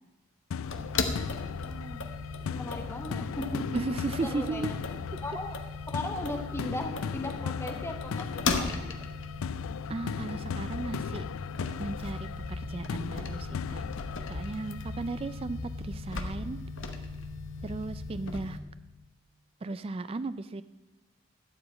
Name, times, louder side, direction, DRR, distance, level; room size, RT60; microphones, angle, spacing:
sound 1, 0.5-15.5, left 6 dB, 80° left, 0.4 m, -38 dB
sound 2, 0.6-18.6, left 3 dB, 65° left, 1.1 m, -37 dB
voice 1, 1.6-3.8 4.2-4.8 5.2-5.6 5.9-9.0, left 1 dB, 10° left, 4 dB, 1.1 m, -38 dB
voice 2, 3.7-4.7 9.9-11.2 11.8-12.3 12.6-13.8 14.3-15.6 15.8-16.6 17.6-18.6 19.6-20.6, right 3 dB, 25° right, 13 dB, 0.3 m, -35 dB
12.0 x 5.0 x 8.3 m, 1.1 s
head